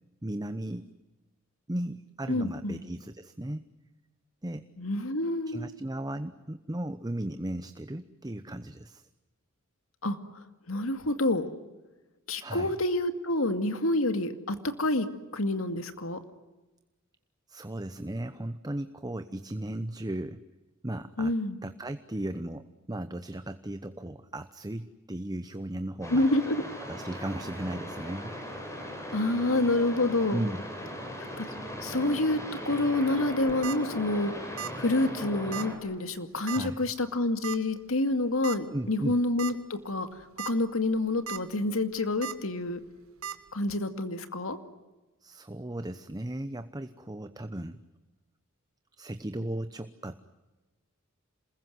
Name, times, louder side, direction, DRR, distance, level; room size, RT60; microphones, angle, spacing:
voice 1, 0.2-0.9 1.7-3.7 4.4-4.7 5.5-9.1 12.4-12.7 17.5-20.4 20.8-21.3 21.6-26.3 26.9-28.3 30.3-30.6 36.5-36.8 38.7-39.2 45.2-47.8 49.0-50.2, right 1 dB, 20° right, 10 dB, 0.9 m, -36 dB
voice 2, 2.3-2.8 4.8-5.7 10.0-10.2 10.7-11.5 12.3-15.1 15.3-16.2 21.2-21.6 26.1-26.6 29.1-30.4 31.4-31.5 31.8-32.4 32.6-34.3 34.8-40.1 40.5-42.8 43.5-44.6, left 2 dB, 75° left, 9 dB, 2.3 m, -28 dB
sound 1, 26.0-35.7, equal, 15° left, 6.1 m, -39 dB
sound 2, 33.3-33.8 34.6-34.8 35.1-35.2 35.5-35.7 36.5-36.8 37.4-37.6 38.4-38.6 39.0-39.1 39.4-39.5 40.2-40.5 40.9-41.4 42.2-42.3 43.2-43.3, right 8 dB, 80° right, 1.6 m, -36 dB
27.5 x 21.5 x 9.4 m, 1.1 s
head